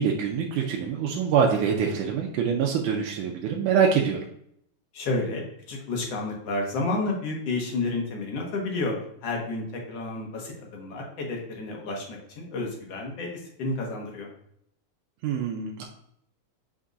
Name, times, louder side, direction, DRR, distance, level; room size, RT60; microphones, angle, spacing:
voice 1, 0.0-4.2 15.2-15.8, right 6 dB, 80° right, 1 dB, 2.1 m, -25 dB
voice 2, 4.9-9.0 9.2-14.3, left 2 dB, 60° left, -1 dB, 2.0 m, -31 dB
7.0 x 5.4 x 2.5 m, 0.71 s
omnidirectional pair, 3.7 m